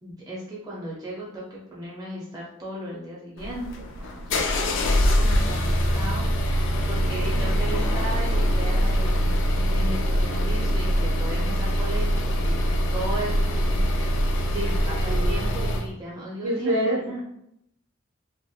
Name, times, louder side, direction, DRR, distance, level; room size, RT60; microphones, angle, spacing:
voice 1, 0.0-12.6 12.9-14.1 14.4-17.2, right 1 dB, 20° right, -6 dB, 0.4 m, -36 dB
sound 1, 3.4-15.9, equal, 60° left, 0.3 m, -23 dB
voice 2, 4.5-5.0 15.1-15.4 16.4-17.0, right 1 dB, 75° right, -2 dB, 0.8 m, -28 dB
2.6 x 2.1 x 2.3 m, 0.77 s
head